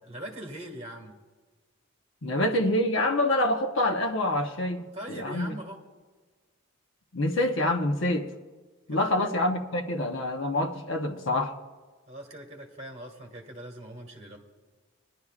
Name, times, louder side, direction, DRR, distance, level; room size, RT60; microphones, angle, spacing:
voice 1, 0.0-1.1 4.9-5.8 8.9-9.3 12.1-14.4, right 1 dB, 30° right, 1 dB, 1.8 m, -41 dB
voice 2, 2.2-5.5 7.1-8.3 8.9-11.6, left 1 dB, 65° left, 5 dB, 0.9 m, -26 dB
21.0 x 11.5 x 2.4 m, 1.4 s
head